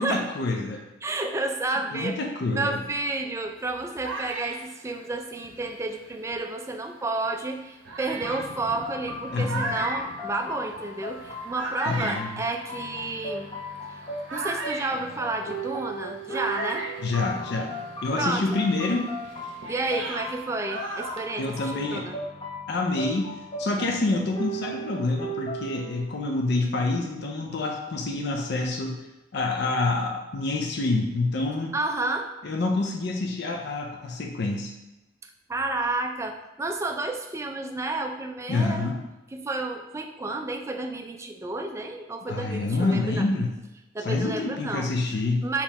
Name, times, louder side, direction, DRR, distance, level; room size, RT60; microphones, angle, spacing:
voice 1, 0.0-0.8 1.9-2.8 9.3-9.7 11.9-12.3 17.0-17.7 18.0-19.1 21.4-22.1 22.7-29.1 29.3-31.7 32.4-34.7 38.5-39.0 42.3-43.5 44.0-45.5, left 2 dB, 60° left, 2 dB, 0.5 m, -27 dB
voice 2, 1.0-2.2 2.5-13.5 14.3-16.9 18.1-18.5 19.7-22.2 31.7-32.3 35.5-38.9 39.3-43.3 43.9-44.9 45.4-45.6, right 2 dB, 15° right, 5 dB, 0.3 m, -31 dB
sound 1, 3.5-6.6 7.2-7.3 7.8-17.9 18.2-21.9, right 2 dB, 85° right, 0.7 m, -37 dB
sound 2, 8.2-26.0, right 1 dB, 25° left, 0.8 m, -37 dB
4.0 x 3.0 x 4.1 m, 0.99 s
head